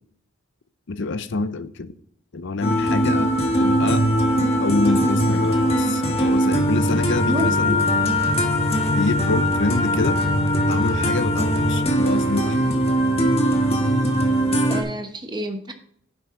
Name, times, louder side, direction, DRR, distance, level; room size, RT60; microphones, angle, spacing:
voice 1, 0.9-1.9 2.3-3.3 3.6-4.1 4.6-7.8 9.0-10.2 10.7-12.7, left 3 dB, 60° left, 0.7 m, -26 dB
sound 1, 2.6-14.8, equal, 30° left, 1.5 m, -20 dB
voice 2, 7.3-7.8 14.7-15.7, equal, 20° right, 1.0 m, -28 dB
10.0 x 7.8 x 3.7 m
head